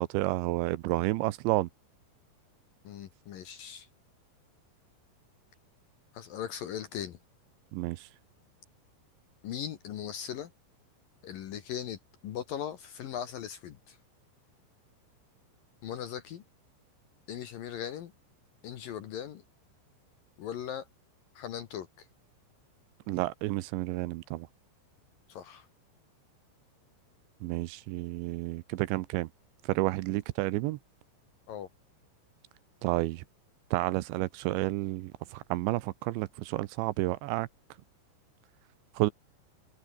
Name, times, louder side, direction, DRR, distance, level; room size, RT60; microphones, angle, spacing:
voice 1, 0.0-1.7 7.7-8.1 23.1-24.5 27.4-29.3 29.6-30.8 32.8-33.2 33.7-37.5 38.9-39.1, right 18 dB, 80° right, 2.9 m, -30 dB
voice 2, 2.8-3.9 6.1-7.2 9.4-10.5 11.2-14.0 15.8-16.4 17.3-18.1 18.6-19.4 20.4-20.9 21.3-22.1 25.3-25.7 31.5-31.7, left 9 dB, 65° left, 2.5 m, -39 dB
omnidirectional pair, 5.5 m